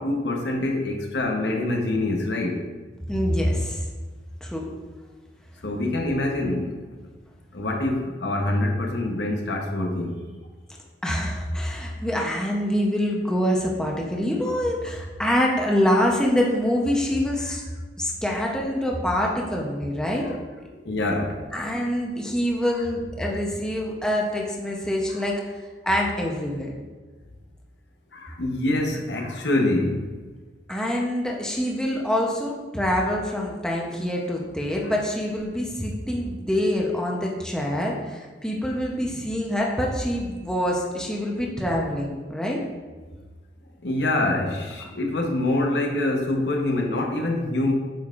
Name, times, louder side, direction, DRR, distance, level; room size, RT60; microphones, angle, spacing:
voice 1, 0.0-2.6 5.6-7.0 7.5-10.2 18.4-18.5 20.2-20.4 20.8-21.4 25.1-25.2 28.1-30.1 34.8-34.9 43.8-47.7, left 2 dB, 75° left, 1 dB, 1.0 m, -25 dB
voice 2, 3.1-3.8 4.4-4.7 11.0-17.6 18.0-20.3 21.5-25.4 25.8-26.7 30.7-42.6, equal, 5° left, -2 dB, 0.7 m, -25 dB
8.7 x 5.5 x 2.5 m, 1.3 s
head